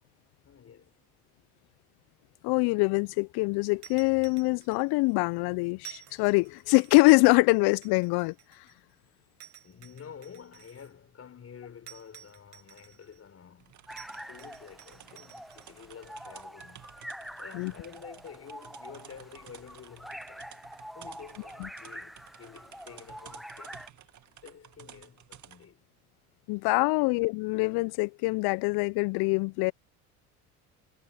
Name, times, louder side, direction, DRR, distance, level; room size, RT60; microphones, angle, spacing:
voice 1, 0.4-1.0 9.6-13.9 14.3-16.9 17.4-20.5 20.9-23.8 24.4-25.8 27.0-27.1, left 7 dB, 30° left, 5.0 m, -49 dB
voice 2, 2.4-8.3 17.5-17.7 21.6-21.7 26.5-29.7, left 26 dB, 55° left, 1.2 m, -24 dB
sound 1, 3.8-5.1 5.8-7.1 7.8-8.9 9.4-10.9 11.9-13.2 14.0-15.7, right 11 dB, 85° right, 2.1 m, -52 dB
sound 2, 13.6-25.7, right 11 dB, 40° right, 2.3 m, -53 dB
sound 3, 13.9-23.9, equal, ahead, 1.0 m, -46 dB
hypercardioid pair, 70°, 45 cm